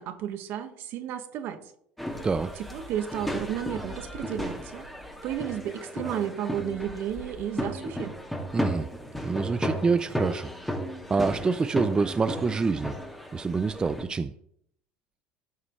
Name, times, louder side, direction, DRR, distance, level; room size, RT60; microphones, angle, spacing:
voice 1, 0.0-1.6 2.6-4.8 5.2-8.1, right 10 dB, 60° right, 7 dB, 1.4 m, -33 dB
sound 1, 2.0-14.0, equal, 5° left, 2.1 m, -35 dB
voice 2, 8.5-8.9 9.2-10.5 11.1-13.0 13.3-14.3, right 4 dB, 20° right, 11 dB, 0.4 m, -26 dB
15.5 x 5.8 x 3.2 m, 0.69 s
supercardioid pair, 110°, 4 cm